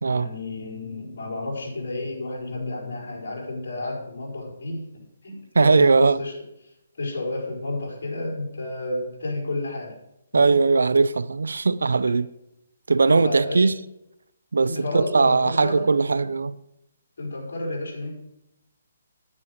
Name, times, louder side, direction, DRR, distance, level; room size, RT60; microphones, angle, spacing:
voice 1, 0.1-6.4 6.9-10.0 10.3-10.6 13.1-13.7 14.6-16.3 17.2-18.1, left 2 dB, 70° left, 4.8 m, -31 dB
voice 2, 5.5-6.2 10.3-12.3 12.9-13.7 14.5-16.5, right 4 dB, 90° right, 0.5 m, -19 dB
9.7 x 9.6 x 5.2 m
hypercardioid pair, 160°, 0 cm